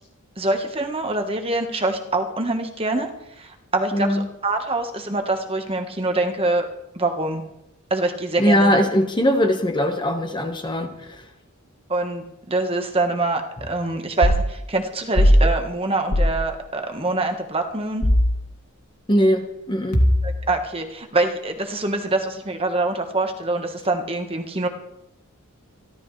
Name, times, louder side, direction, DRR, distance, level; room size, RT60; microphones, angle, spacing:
voice 1, 0.4-3.1 3.4-6.7 6.9-7.4 7.9-8.8 11.9-13.4 13.7-18.0 20.2-24.7, right 2 dB, 25° right, 5 dB, 1.3 m, -24 dB
voice 2, 3.9-4.3 8.4-11.3 19.1-20.0, equal, 20° left, 5 dB, 1.3 m, -20 dB
sound 1, 14.2-14.5 15.2-15.4 16.1-16.4 18.0-18.3 19.9-20.5, equal, 85° left, 2.2 m, -17 dB
27.0 x 12.5 x 3.3 m, 0.84 s
head